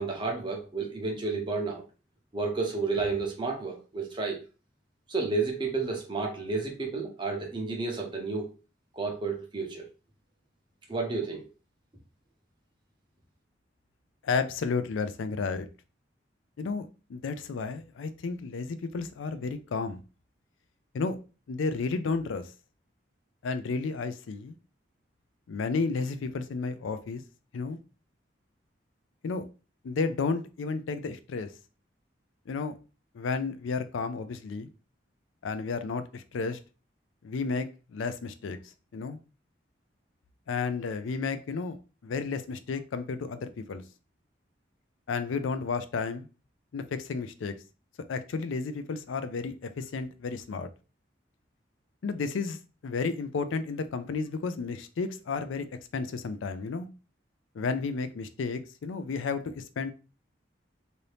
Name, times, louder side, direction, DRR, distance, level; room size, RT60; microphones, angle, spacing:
voice 1, 0.0-1.8 2.3-4.4 5.1-8.5 8.9-9.9 10.9-11.4, right 3 dB, 25° right, 1 dB, 0.7 m, -31 dB
voice 2, 14.2-15.7 16.6-20.0 20.9-21.2 21.5-22.5 23.4-24.5 25.5-27.2 27.5-27.8 29.2-29.4 29.8-31.5 32.5-32.8 33.1-34.7 35.4-36.6 37.2-38.6 38.9-39.2 40.5-43.8 45.1-46.3 46.7-47.6 48.1-50.7 52.0-55.7 55.9-56.9 57.5-59.9, left 4 dB, 90° left, 11 dB, 0.4 m, -32 dB
2.8 x 2.6 x 3.3 m, 0.33 s
head